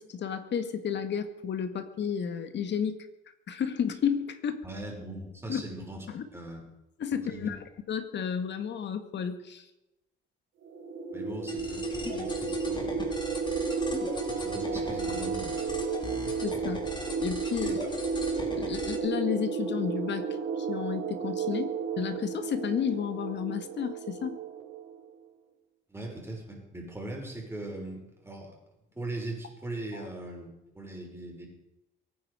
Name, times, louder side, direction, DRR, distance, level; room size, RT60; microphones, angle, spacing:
voice 1, 0.0-3.0 3.5-4.6 5.5-5.6 6.1-6.3 7.0-7.6 7.9-9.7 14.0-14.1 16.4-16.8 17.2-17.8 18.6-20.3 20.6-24.4 29.9-30.1, left 7 dB, 65° left, 9 dB, 1.9 m, -32 dB
voice 2, 4.6-6.1 6.3-6.6 7.3-7.5 11.1-13.5 14.3-15.6 17.6-17.9 25.9-28.6 28.9-31.5, right 1 dB, 10° right, -1 dB, 5.9 m, -40 dB
sound 1, 10.6-25.0, right 5 dB, 85° right, 4.3 m, -33 dB
sound 2, 11.5-19.0, left 2 dB, 25° left, 3.6 m, -40 dB
23.0 x 9.8 x 5.1 m, 0.93 s
cardioid pair, 90°, 20 cm